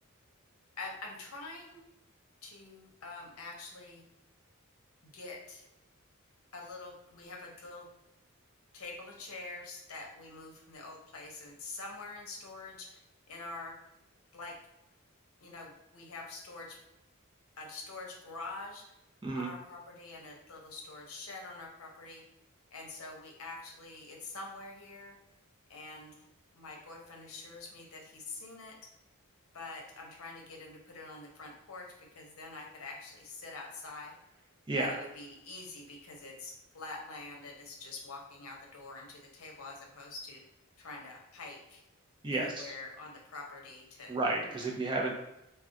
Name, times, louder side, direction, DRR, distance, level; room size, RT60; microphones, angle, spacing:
voice 1, 0.8-1.8 2.4-4.0 5.0-5.6 6.5-7.9 8.7-13.0 13.3-13.8 14.3-14.6 15.4-16.8 17.6-18.8 19.3-22.2 22.7-25.2 25.7-26.3 26.5-28.8 29.5-34.2 34.8-40.4 40.8-41.8 42.3-44.2 44.5-44.7, left 3 dB, 80° left, 0 dB, 0.7 m, -45 dB
voice 2, 42.2-42.7 44.1-45.1, right 2 dB, 20° right, -1 dB, 0.5 m, -32 dB
2.3 x 2.2 x 3.7 m, 0.88 s
head